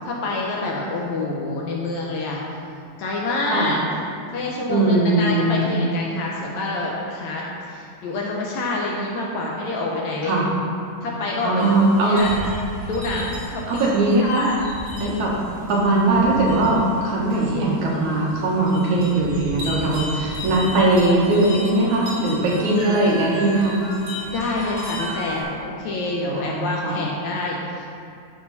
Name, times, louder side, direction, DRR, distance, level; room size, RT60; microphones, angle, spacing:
voice 1, 0.1-2.4 3.0-3.8 4.3-10.4 11.0-11.7 12.0-12.3 12.8-13.9 14.2-14.6 15.0-15.2 24.3-27.9, left 2 dB, 70° left, -3 dB, 1.9 m, -27 dB
voice 2, 4.7-5.8 10.2-10.5 11.4-12.3 13.7-14.4 15.0-15.3 15.7-23.8 26.3-27.1, right 2 dB, 65° right, -4 dB, 2.6 m, -20 dB
sound 1, 11.6-25.4, equal, 50° right, 2.7 m, -34 dB
11.0 x 6.1 x 4.1 m, 2.5 s
omnidirectional pair, 3.9 m